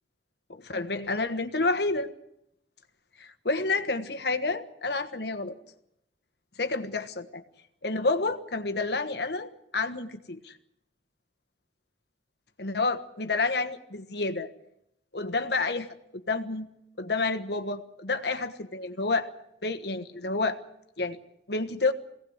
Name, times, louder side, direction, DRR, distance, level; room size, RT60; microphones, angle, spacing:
voice 1, 0.5-2.1 3.2-5.6 6.6-7.4 7.8-10.5 12.6-14.5 15.1-15.9 16.1-16.7 17.0-19.3 19.6-20.6 21.0-21.2 21.5-21.9, left 3 dB, 65° left, 9 dB, 1.4 m, -29 dB
22.5 x 17.5 x 8.1 m, 0.81 s
head